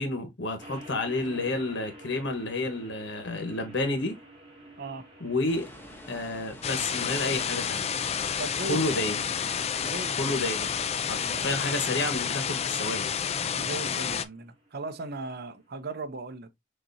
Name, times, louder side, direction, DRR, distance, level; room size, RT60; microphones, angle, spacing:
voice 1, 0.0-4.2 5.2-5.7 6.1-7.9 8.7-9.2 10.2-10.7 11.1-13.1, left 2 dB, 70° left, 1.4 m, -30 dB
sound 1, 0.6-15.9, right 1 dB, 30° right, 2.1 m, -52 dB
sound 2, 5.5-11.6, left 1 dB, 10° left, 1.2 m, -46 dB
sound 3, 6.6-14.3, left 7 dB, 35° left, 0.4 m, -30 dB
voice 2, 8.4-8.8 9.8-10.4 11.2-11.5 13.5-16.6, right 2 dB, 60° right, 0.7 m, -37 dB
6.5 x 2.9 x 2.8 m
head